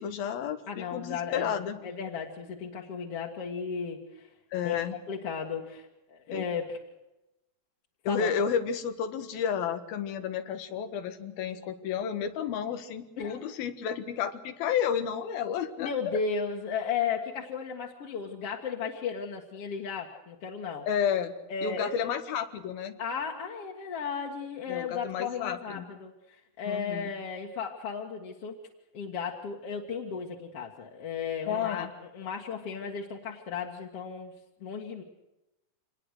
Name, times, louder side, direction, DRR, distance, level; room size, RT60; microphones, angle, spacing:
voice 1, 0.0-1.8 4.5-5.0 6.3-6.5 8.0-15.9 20.9-21.3 21.6-23.0 24.7-25.8 26.6-27.1 31.5-31.9, left 8 dB, 85° left, 9 dB, 3.4 m, -31 dB
voice 2, 0.7-4.3 4.6-4.8 5.1-6.8 8.1-8.3 13.2-13.4 15.8-20.9 21.5-22.2 23.0-28.5 28.9-31.9 32.1-34.3 34.6-35.0, left 6 dB, 50° left, -1 dB, 2.4 m, -35 dB
26.0 x 20.5 x 6.5 m, 0.96 s
omnidirectional pair, 4.1 m